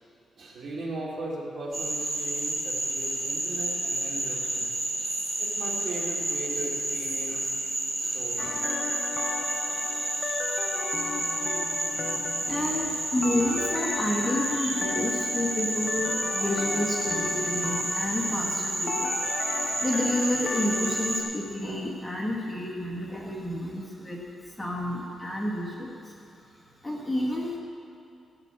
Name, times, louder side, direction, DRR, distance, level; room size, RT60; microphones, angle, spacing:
voice 1, 0.4-4.7 5.0-7.5 8.0-8.6, right 2 dB, 50° right, -4 dB, 2.9 m, -38 dB
Frog, 1.7-21.2, right 1 dB, 30° right, 2.7 m, -30 dB
sound 1, 8.4-21.3, left 5 dB, 40° left, 0.7 m, -35 dB
voice 2, 11.9-19.2 19.5-26.5 26.8-27.6, left 1 dB, 5° left, -3 dB, 1.6 m, -30 dB
16.0 x 8.1 x 7.2 m, 2.5 s
wide cardioid pair, 160°, 0 cm